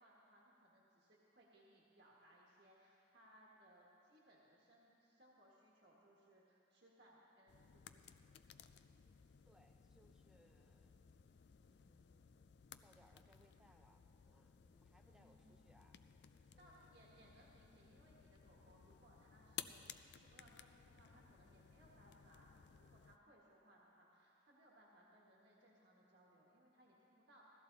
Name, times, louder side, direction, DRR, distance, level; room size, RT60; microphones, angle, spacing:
voice 1, 0.0-8.0 15.0-15.7 16.6-27.4, right 1 dB, 55° right, -4 dB, 1.6 m, -68 dB
sound 1, 7.5-23.2, left 9 dB, 60° left, 0.4 m, -58 dB
voice 2, 9.4-10.9 11.7-12.4 12.8-16.0 16.5-17.0, equal, 5° right, 3 dB, 0.6 m, -72 dB
16.0 x 13.5 x 4.0 m, 2.7 s
head